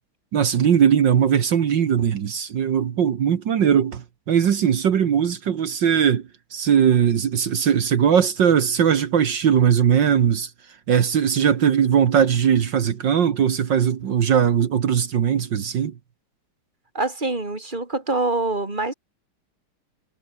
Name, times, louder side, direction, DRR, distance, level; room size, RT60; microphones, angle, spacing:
voice 1, 0.3-6.2 6.5-10.5 10.9-15.9, right 8 dB, 60° right, 1.9 m, -19 dB
voice 2, 16.9-18.9, right 2 dB, 20° right, 3.2 m, -25 dB
omnidirectional pair, 2.3 m